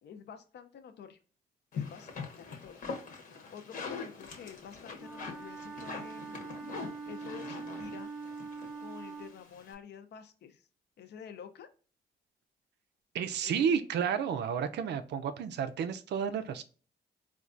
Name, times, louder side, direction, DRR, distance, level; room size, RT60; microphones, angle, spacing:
voice 1, 0.0-1.2 1.7-2.9 3.5-6.5 7.1-8.1 8.8-10.7 11.0-11.7 13.4-13.9, left 7 dB, 75° left, 8 dB, 0.5 m, -49 dB
sound 1, 1.7-9.7, left 5 dB, 50° left, 0.8 m, -43 dB
Wind instrument woodwind instrument, 5.0-9.4, right 4 dB, 5° right, 0.6 m, -43 dB
voice 2, 13.1-16.6, right 7 dB, 80° right, 9 dB, 0.4 m, -31 dB
4.4 x 2.3 x 2.5 m, 0.38 s
cardioid pair, 125°, 18 cm